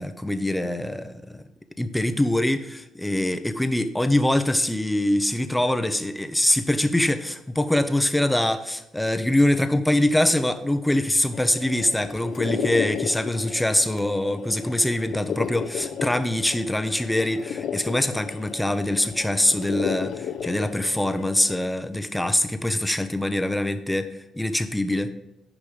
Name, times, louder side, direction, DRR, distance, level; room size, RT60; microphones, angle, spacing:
voice 1, 0.0-1.4 1.8-24.1 24.4-25.1, left 1 dB, 5° left, 9 dB, 0.8 m, -24 dB
sound 1, 11.3-21.6, left 8 dB, 70° left, 0.7 m, -34 dB
10.5 x 5.2 x 5.0 m, 0.91 s
cardioid pair, 90°, 0 cm